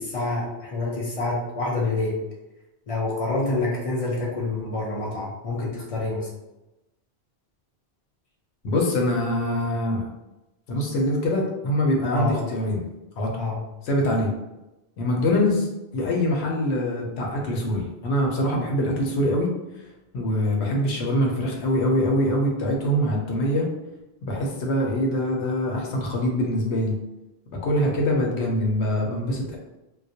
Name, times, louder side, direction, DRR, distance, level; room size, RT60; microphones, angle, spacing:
voice 1, 0.0-2.2 2.9-6.3 12.1-12.5 13.4-13.6, left 2 dB, 50° left, -3 dB, 0.4 m, -27 dB
voice 2, 8.6-10.0 10.7-12.8 13.2-13.3 13.8-14.3 15.0-15.7 15.9-19.5 20.1-23.7 24.2-27.0 27.6-29.6, left 1 dB, 85° left, 0 dB, 0.8 m, -24 dB
2.2 x 2.0 x 2.7 m, 0.98 s
omnidirectional pair, 1.1 m